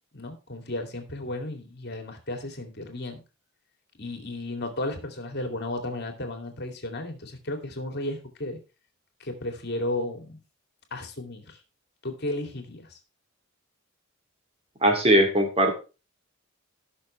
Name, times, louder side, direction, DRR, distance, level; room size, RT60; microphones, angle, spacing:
voice 1, 0.1-3.2 4.0-8.6 9.2-10.4 10.9-11.6 12.0-13.0, left 1 dB, 50° left, 5 dB, 2.6 m, -34 dB
voice 2, 14.8-15.7, right 1 dB, 30° right, 4 dB, 2.5 m, -20 dB
17.5 x 6.4 x 3.3 m, 0.31 s
head